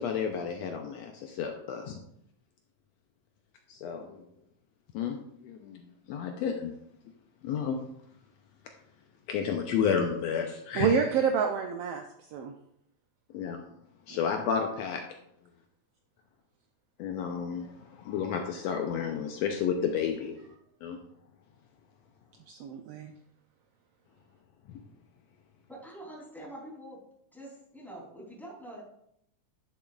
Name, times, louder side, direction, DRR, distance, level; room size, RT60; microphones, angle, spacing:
voice 1, 0.0-2.0 3.7-4.2 4.9-5.2 5.4-5.8 6.1-6.7 7.4-7.8 9.3-10.9 13.3-13.6 14.1-15.0 17.0-20.4 20.8-21.0 24.7-24.8, left 7 dB, 80° left, 3 dB, 1.7 m, -31 dB
voice 2, 10.7-12.5 22.5-23.1, right 6 dB, 90° right, 4 dB, 1.3 m, -28 dB
voice 3, 25.7-27.0 27.3-28.8, right 1 dB, ahead, -5 dB, 2.8 m, -45 dB
10.0 x 7.0 x 2.4 m, 0.74 s
omnidirectional pair, 3.4 m